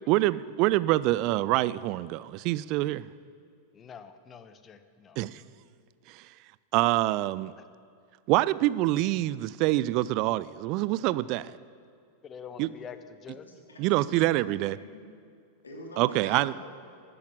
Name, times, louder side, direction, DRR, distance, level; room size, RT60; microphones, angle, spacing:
voice 1, 0.1-3.1 5.2-5.4 6.1-6.2 6.7-7.5 8.3-11.5 12.6-12.7 13.8-14.8 16.0-16.5, right 17 dB, 40° right, 18 dB, 0.3 m, -26 dB
voice 2, 3.7-5.2 12.2-13.4, left 7 dB, 25° left, 11 dB, 0.9 m, -45 dB
voice 3, 13.4-15.0 15.6-16.7, left 1 dB, 75° left, 0 dB, 2.7 m, -46 dB
13.0 x 8.6 x 7.7 m, 2.2 s
figure-of-eight pair, 90°, 0 cm